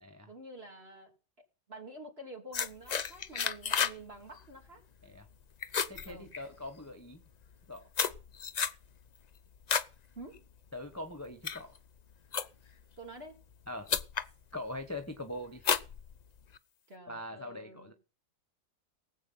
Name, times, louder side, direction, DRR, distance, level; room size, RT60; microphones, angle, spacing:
voice 1, 0.3-1.1 1.7-4.8 6.1-6.3 10.1-10.4 13.0-13.4 16.9-17.9, right 1 dB, 35° right, 1 dB, 3.3 m, -48 dB
sound 1, 2.5-4.0 4.3-4.6 5.0-5.3 5.6-6.8 7.4-9.9 10.3-10.7 11.2-12.8 13.5-13.6 13.9-14.3 14.8-15.1 15.6-16.6, left 6 dB, 75° left, 0.3 m, -32 dB
voice 2, 5.9-7.2 7.7-7.8 10.7-11.8 13.7-13.9 14.5-15.6 17.1-17.9, left 1 dB, 10° left, 5 dB, 1.1 m, -42 dB
18.0 x 8.3 x 5.7 m, 0.36 s
omnidirectional pair, 1.8 m